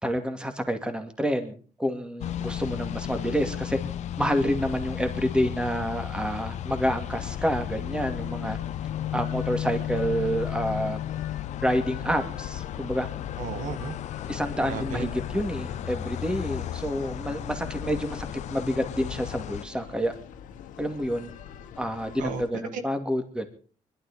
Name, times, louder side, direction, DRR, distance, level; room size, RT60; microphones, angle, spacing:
voice 1, 0.0-3.8 4.2-8.6 9.1-11.0 11.6-13.1 14.3-20.1 20.8-21.3 21.8-23.5, equal, 5° right, 6 dB, 2.5 m, -28 dB
sound 1, 2.2-19.7, left 11 dB, 65° left, 0.9 m, -34 dB
sound 2, 7.2-22.5, left 9 dB, 90° left, 1.8 m, -45 dB
voice 2, 13.4-14.0 14.6-15.1 22.2-22.8, right 6 dB, 85° right, 8 dB, 2.1 m, -34 dB
21.5 x 12.5 x 5.1 m, 0.40 s
cardioid pair, 115°, 13 cm